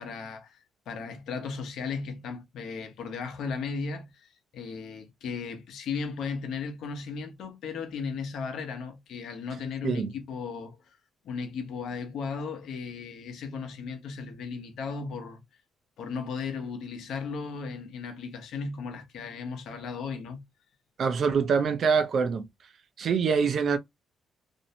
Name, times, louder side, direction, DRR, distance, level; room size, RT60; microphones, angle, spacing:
voice 1, 0.0-10.8 11.2-15.4 16.0-20.4, left 5 dB, 75° left, 0.7 m, -36 dB
voice 2, 21.0-22.5 23.0-23.8, right 6 dB, 55° right, 0.5 m, -25 dB
2.6 x 2.1 x 2.7 m
cardioid pair, 90°, 0 cm